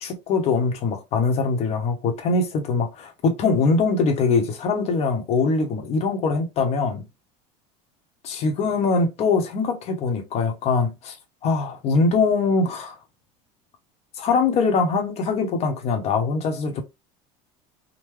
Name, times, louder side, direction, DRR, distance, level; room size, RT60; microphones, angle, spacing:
voice 1, 0.0-7.1 8.2-11.1 11.4-13.0 14.2-16.8, left 4 dB, 40° left, 0.9 m, -22 dB
3.7 x 2.1 x 3.1 m
supercardioid pair, 135°, 16 cm